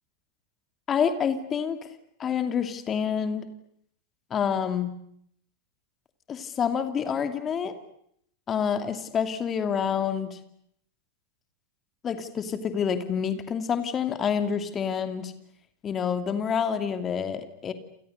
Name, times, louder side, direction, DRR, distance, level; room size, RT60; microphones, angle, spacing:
voice 1, 0.9-1.8 2.2-3.5 4.3-4.9 6.3-7.7 8.5-10.4 12.0-15.3 15.8-17.7, left 7 dB, 25° left, 9 dB, 2.8 m, -27 dB
29.0 x 28.0 x 6.8 m, 0.71 s
figure-of-eight pair, 90°, 0 cm